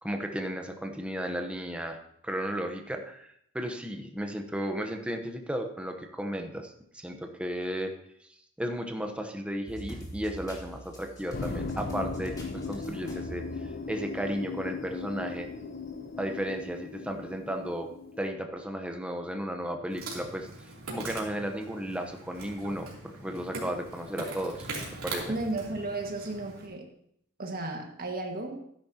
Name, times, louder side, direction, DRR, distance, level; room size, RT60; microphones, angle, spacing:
voice 1, 0.0-7.9 8.6-15.5 16.2-17.9 18.2-20.5 20.9-24.7 25.0-25.4, equal, 5° right, 4 dB, 0.9 m, -34 dB
sound 1, 9.7-14.4 14.8-14.9 15.9-16.0, right 1 dB, 15° left, 2.1 m, -44 dB
sound 2, 11.3-18.3, left 4 dB, 45° left, 0.8 m, -38 dB
Insect, 19.9-26.7, right 3 dB, 85° right, 3.0 m, -41 dB
voice 2, 25.3-26.9 27.4-28.6, right 2 dB, 45° right, 2 dB, 1.7 m, -34 dB
12.5 x 10.5 x 2.8 m, 0.71 s
head